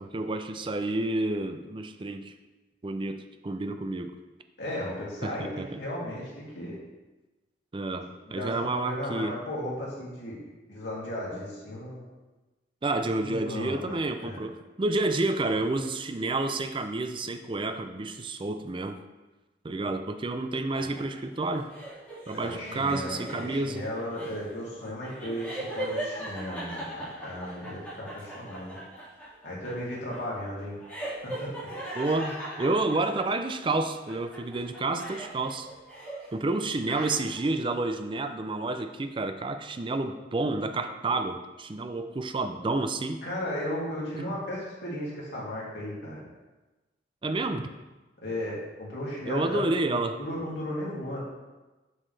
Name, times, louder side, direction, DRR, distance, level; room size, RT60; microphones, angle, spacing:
voice 1, 0.0-2.3 2.8-4.1 5.2-5.8 7.7-9.4 12.8-19.0 19.6-21.7 22.3-23.9 31.9-35.7 36.3-43.2 44.1-44.4 47.2-47.7 49.3-50.2, right 2 dB, 30° right, 8 dB, 0.4 m, -30 dB
voice 2, 4.6-6.8 8.3-10.4 10.7-12.0 13.2-14.4 20.8-21.0 22.3-28.8 29.4-30.8 31.2-31.5 43.2-46.2 48.2-51.2, left 1 dB, 85° left, -5 dB, 2.5 m, -35 dB
sound 1, 20.7-33.7 34.1-36.3 36.6-37.5, right 1 dB, 10° left, 2.4 m, -39 dB
7.3 x 6.4 x 3.3 m, 1.1 s
head